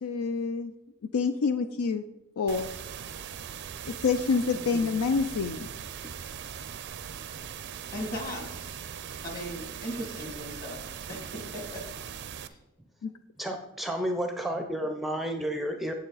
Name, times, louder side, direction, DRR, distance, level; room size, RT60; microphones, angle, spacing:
voice 1, 0.0-0.7 1.1-2.0 2.4-2.7 3.9-5.7 13.0-13.1, left 5 dB, 80° left, 9 dB, 0.4 m, -27 dB
sound 1, 2.5-12.5, right 8 dB, 55° right, 0.5 m, -40 dB
voice 2, 4.5-5.0 7.9-8.6 9.2-10.8 11.1-11.8 12.5-12.6, equal, 40° left, 2 dB, 2.1 m, -38 dB
voice 3, 13.4-15.9, equal, ahead, 4 dB, 0.5 m, -31 dB
9.0 x 7.1 x 4.0 m, 0.90 s
head